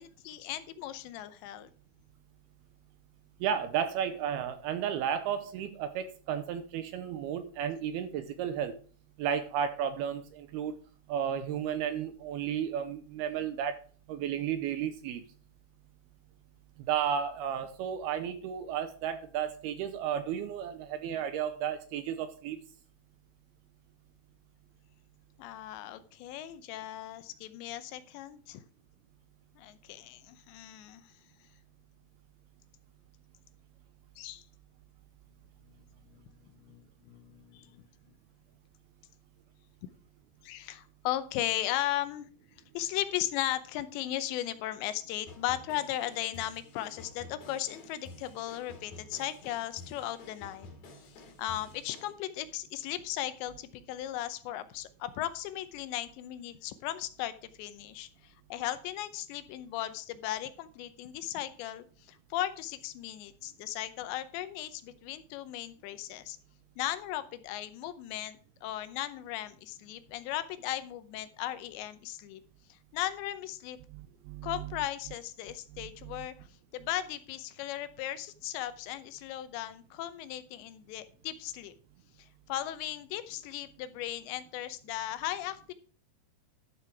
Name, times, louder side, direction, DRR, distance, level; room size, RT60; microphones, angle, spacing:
voice 1, 0.0-1.7 25.4-28.6 29.6-31.1 34.2-34.4 35.7-37.9 40.4-42.3 42.7-50.7 51.2-66.4 66.8-72.4 72.7-73.8 74.4-76.3 76.7-81.7 82.2-85.7, left 13 dB, 85° left, 12 dB, 3.0 m, -37 dB
voice 2, 3.4-8.7 9.2-10.7 11.1-13.8 14.1-15.2 16.9-22.6 73.9-74.7 75.8-76.3, right 8 dB, 80° right, 10 dB, 2.4 m, -33 dB
sound 1, 45.3-52.1, left 3 dB, 60° left, 4.0 m, -51 dB
12.0 x 6.8 x 4.7 m, 0.40 s
omnidirectional pair, 5.1 m